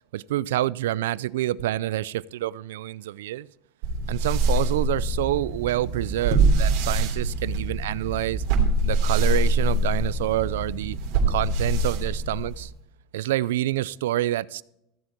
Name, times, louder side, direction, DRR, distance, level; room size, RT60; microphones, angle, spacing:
voice 1, 0.1-3.5 4.1-8.4 8.8-11.0 11.3-12.7 13.1-14.6, right 14 dB, 90° right, 0.4 m, -27 dB
sound 1, 3.8-12.7, right 2 dB, 65° right, 2.9 m, -24 dB
15.0 x 7.7 x 4.5 m
supercardioid pair, 125°, 0 cm